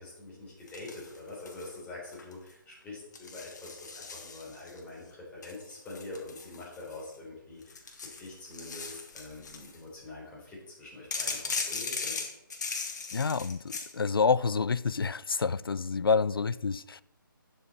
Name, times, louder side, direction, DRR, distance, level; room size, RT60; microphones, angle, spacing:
voice 1, 0.0-7.8 8.2-12.2, left 2 dB, 10° left, 4.3 m, -45 dB
sound 1, 0.7-1.8 2.1-2.5 3.1-4.8 5.4-7.1 7.6-9.8 11.1-13.9, left 4 dB, 50° left, 2.0 m, -38 dB
voice 2, 13.1-17.0, left 5 dB, 85° left, 0.5 m, -28 dB
11.5 x 7.2 x 4.3 m
hypercardioid pair, 160°, 12 cm